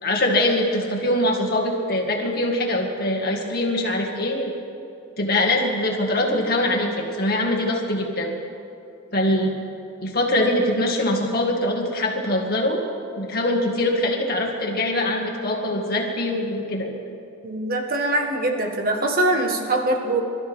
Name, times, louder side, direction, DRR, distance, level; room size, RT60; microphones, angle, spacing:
voice 1, 0.0-4.5 5.2-8.3 9.1-9.5 10.0-12.8 13.2-16.9, left 1 dB, 45° left, 0 dB, 2.1 m, -23 dB
voice 2, 17.4-20.2, right 2 dB, 45° right, 2 dB, 1.6 m, -23 dB
28.0 x 13.0 x 3.7 m, 2.6 s
head